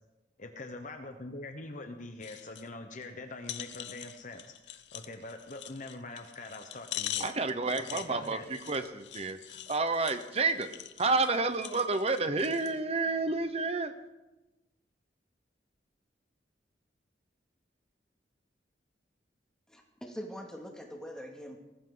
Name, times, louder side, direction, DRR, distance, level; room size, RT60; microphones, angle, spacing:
voice 1, 0.4-7.3 7.7-8.4, left 2 dB, 45° left, 6 dB, 1.0 m, -44 dB
sound 1, 2.2-2.7 3.0-3.1 3.4-12.8 13.3-13.4, left 12 dB, 80° left, 0.9 m, -43 dB
voice 2, 7.2-8.4 8.7-9.4 9.7-10.7 11.0-13.9, right 3 dB, 35° right, 10 dB, 0.9 m, -29 dB
voice 3, 19.7-21.6, equal, 5° left, 1 dB, 2.3 m, -43 dB
20.0 x 14.5 x 4.0 m, 1.0 s
head